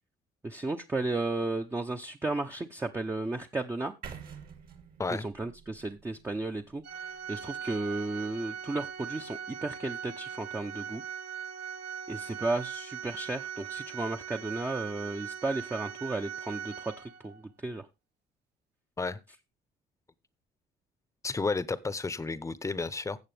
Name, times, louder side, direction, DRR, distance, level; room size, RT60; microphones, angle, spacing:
voice 1, 0.4-3.9 5.1-11.0 12.1-16.9 17.2-17.9, right 2 dB, 15° right, 0.8 m, -34 dB
sound 1, 4.0-8.0, right 7 dB, 60° right, 2.7 m, -49 dB
Organ, 6.8-17.4, right 8 dB, 75° right, 1.6 m, -40 dB
voice 2, 21.2-23.2, left 3 dB, 20° left, 0.9 m, -32 dB
16.0 x 6.8 x 3.4 m
cardioid pair, 110°, 17 cm